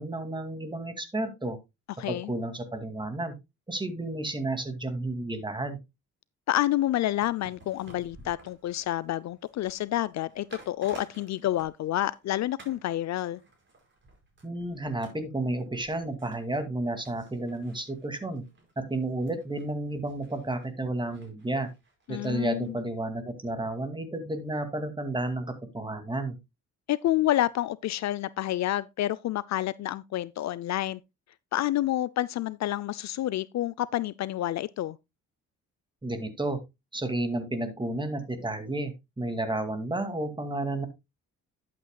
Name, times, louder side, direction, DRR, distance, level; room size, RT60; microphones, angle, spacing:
voice 1, 0.0-1.6 2.1-3.3 3.7-5.8 14.4-18.4 18.8-21.7 22.1-26.4 36.0-36.6 36.9-40.9, right 2 dB, 15° right, 2.3 m, -32 dB
voice 2, 2.0-2.3 6.5-13.4 22.1-22.8 26.9-31.0 31.5-35.0, left 14 dB, 65° left, 0.5 m, -29 dB
sound 1, 7.1-12.3 12.6-12.9 13.2-22.3 22.6-22.7, right 3 dB, 40° right, 5.2 m, -54 dB
11.5 x 8.5 x 2.3 m
cardioid pair, 90°, 30 cm